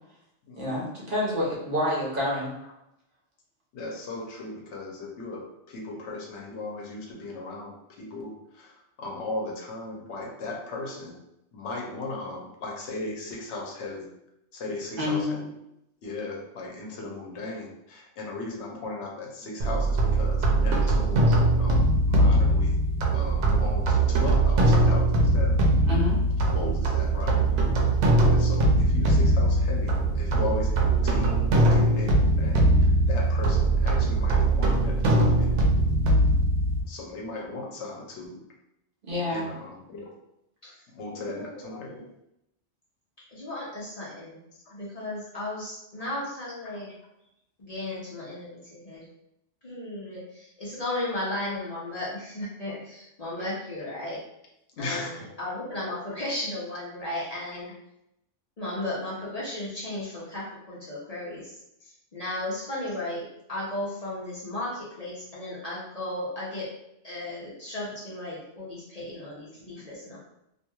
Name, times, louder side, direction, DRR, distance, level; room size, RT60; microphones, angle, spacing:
voice 1, 0.6-2.5 15.0-15.4 25.9-26.2 39.0-39.5, left 1 dB, 50° right, -5 dB, 1.0 m, -28 dB
voice 2, 3.7-7.7 8.0-11.2 11.5-14.1 14.5-15.4 16.0-22.8 23.1-25.1 25.3-25.5 26.5-27.4 28.2-35.6 36.9-38.4 39.3-40.1 40.9-42.0 44.5-44.7 46.6-46.8 54.8-55.3, left 2 dB, 75° left, -1 dB, 0.9 m, -37 dB
sound 1, 19.6-36.8, right 2 dB, 90° right, 0.9 m, -21 dB
voice 3, 41.1-42.1 43.2-44.4 44.7-46.9 47.6-49.1 49.6-54.2 54.8-57.7 58.6-66.7 67.0-70.2, left 1 dB, 45° left, -7 dB, 0.6 m, -35 dB
2.9 x 2.5 x 2.2 m, 0.83 s
omnidirectional pair, 1.2 m